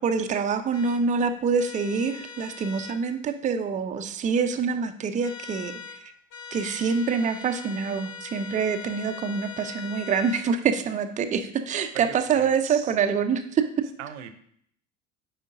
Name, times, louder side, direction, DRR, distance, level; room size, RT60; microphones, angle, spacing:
voice 1, 0.0-5.7 6.5-13.7, right 6 dB, 20° right, 8 dB, 0.5 m, -26 dB
sound 1, 0.7-1.0 1.6-3.0 5.2-6.0 6.3-10.5, left 6 dB, 50° left, 1.1 m, -41 dB
voice 2, 11.9-13.0 14.0-14.3, right 10 dB, 65° right, 11 dB, 0.7 m, -39 dB
8.8 x 5.0 x 2.6 m, 0.67 s
figure-of-eight pair, 60°, 38 cm